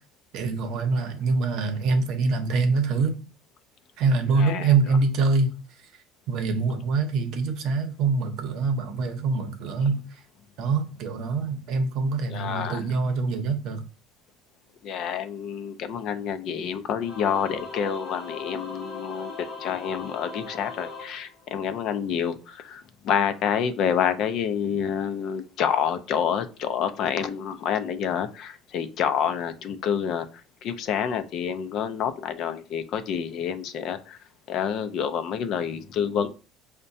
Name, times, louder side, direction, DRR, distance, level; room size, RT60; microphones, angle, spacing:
voice 1, 0.3-3.2 4.0-5.5 6.3-10.0 10.6-13.8, right 4 dB, 60° right, 0.7 m, -24 dB
voice 2, 4.3-4.7 12.3-12.9 14.8-34.2 34.5-36.3, left 8 dB, 50° left, 0.4 m, -28 dB
Singing / Musical instrument, 17.0-21.9, left 4 dB, 35° left, 0.9 m, -39 dB
5.4 x 2.1 x 2.6 m
cardioid pair, 135°, 0 cm